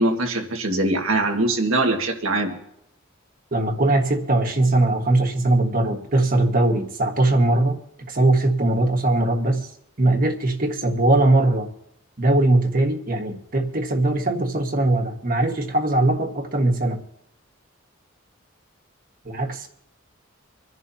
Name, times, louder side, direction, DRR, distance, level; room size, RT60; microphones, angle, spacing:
voice 1, 0.0-2.5, right 2 dB, 80° right, 4 dB, 1.8 m, -22 dB
voice 2, 3.5-7.8 8.1-9.7 10.0-11.7 12.2-17.0 19.2-19.7, right 2 dB, 45° right, 4 dB, 1.5 m, -20 dB
26.0 x 11.0 x 2.8 m, 0.78 s
head